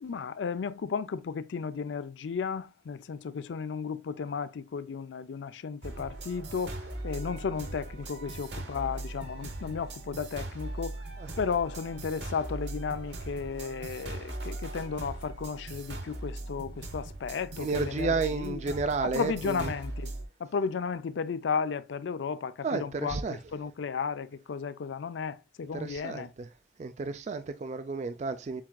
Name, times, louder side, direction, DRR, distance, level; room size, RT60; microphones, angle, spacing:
voice 1, 0.0-6.8 7.0-11.0 11.4-18.1 18.4-18.8 19.0-20.1 20.4-23.2 23.5-26.3, left 5 dB, 75° left, 0.4 m, -34 dB
sound 1, 5.8-20.3, right 2 dB, 65° right, 1.1 m, -39 dB
voice 2, 17.6-19.7 22.6-23.4 25.7-26.5 26.8-28.6, right 4 dB, 40° right, 0.3 m, -32 dB
7.2 x 2.4 x 2.3 m
head